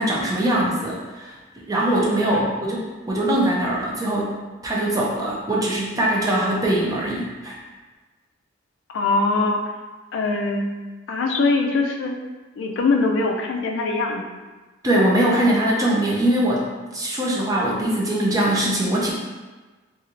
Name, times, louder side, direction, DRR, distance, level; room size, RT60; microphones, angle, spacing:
voice 1, 0.0-2.4 2.7-2.8 3.1-4.3 4.6-7.6 14.8-16.7 16.9-19.1, right 1 dB, 20° right, -4 dB, 0.4 m, -22 dB
voice 2, 8.9-9.6 10.1-10.7 11.1-12.1 12.6-14.2, left 3 dB, 70° left, 2 dB, 0.3 m, -22 dB
3.1 x 2.4 x 2.5 m, 1.3 s
head